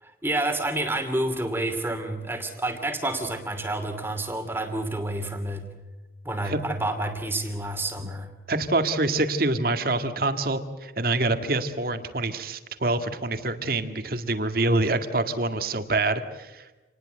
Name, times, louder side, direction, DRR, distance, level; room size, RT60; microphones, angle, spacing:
voice 1, 0.0-5.6 6.2-8.3, right 1 dB, 10° right, 6 dB, 2.7 m, -29 dB
voice 2, 8.5-16.6, right 2 dB, 50° right, 8 dB, 2.0 m, -26 dB
28.0 x 20.0 x 7.9 m, 1.1 s
head